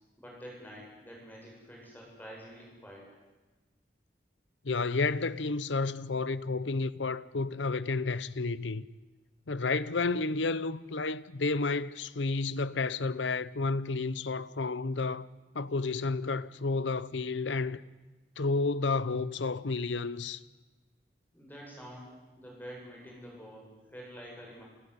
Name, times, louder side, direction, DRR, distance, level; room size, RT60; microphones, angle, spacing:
voice 1, 0.2-3.0 21.3-24.6, equal, 10° left, 7.8 m, -47 dB
voice 2, 4.6-8.9 9.5-15.3 15.5-17.8 18.4-20.4, left 3 dB, 90° left, 0.8 m, -31 dB
28.0 x 14.5 x 9.8 m
head